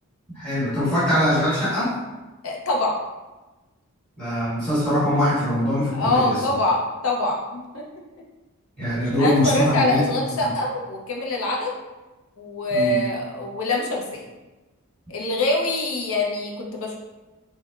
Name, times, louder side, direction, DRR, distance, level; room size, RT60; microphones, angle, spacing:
voice 1, 0.3-2.0 4.2-6.4 8.8-10.5 12.7-13.0, left 1 dB, 5° left, -10 dB, 1.5 m, -22 dB
voice 2, 2.4-3.0 5.9-7.8 9.2-11.7 12.4-14.2 15.1-16.9, left 1 dB, 65° left, -1 dB, 0.5 m, -24 dB
3.6 x 2.1 x 2.3 m, 1.1 s
head